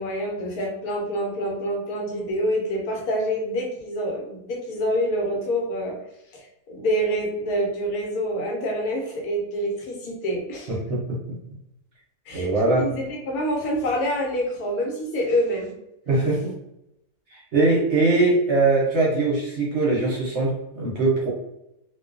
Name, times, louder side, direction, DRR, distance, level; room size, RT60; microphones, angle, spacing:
voice 1, 0.0-6.0 6.3-10.7 12.3-15.8, equal, 80° left, 0 dB, 1.2 m, -27 dB
voice 2, 10.7-11.0 12.3-12.9 16.1-16.5 17.3-21.3, right 3 dB, 60° right, -4 dB, 0.8 m, -21 dB
2.5 x 2.2 x 2.4 m, 0.85 s
omnidirectional pair, 1.5 m